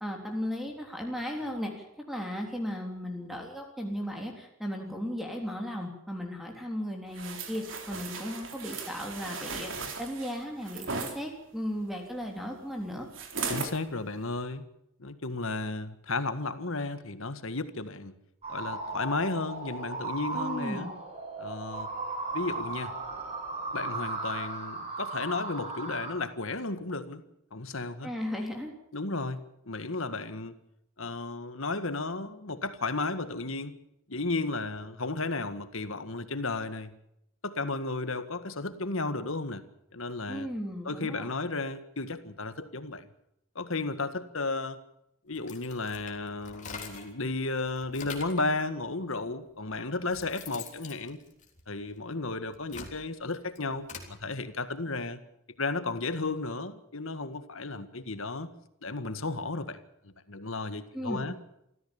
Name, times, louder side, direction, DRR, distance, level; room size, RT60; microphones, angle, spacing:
voice 1, 0.0-13.1 20.3-20.9 28.0-28.7 40.3-41.3 60.9-61.2, equal, ahead, 2 dB, 3.5 m, -36 dB
sound 1, 7.1-11.2 13.1-13.8 14.3-14.4, right 4 dB, 60° right, 3.6 m, -37 dB
voice 2, 13.5-14.6 15.0-18.1 18.5-20.9 21.4-21.9 22.3-22.9 23.7-27.2 27.5-28.1 28.9-30.5 31.0-33.7 34.1-37.0 37.4-39.6 39.9-40.5 40.9-43.1 43.6-44.8 45.3-51.2 51.7-55.2 55.6-58.5 58.8-61.3, left 3 dB, 70° left, 11 dB, 1.8 m, -34 dB
sound 2, 18.4-26.1, right 3 dB, 30° right, 7.1 m, -36 dB
sound 3, 45.3-47.2 47.6-48.5 49.3-49.4 49.8-52.0 52.5-54.1, left 5 dB, 35° left, 3.5 m, -44 dB
26.0 x 14.5 x 7.2 m, 0.80 s
head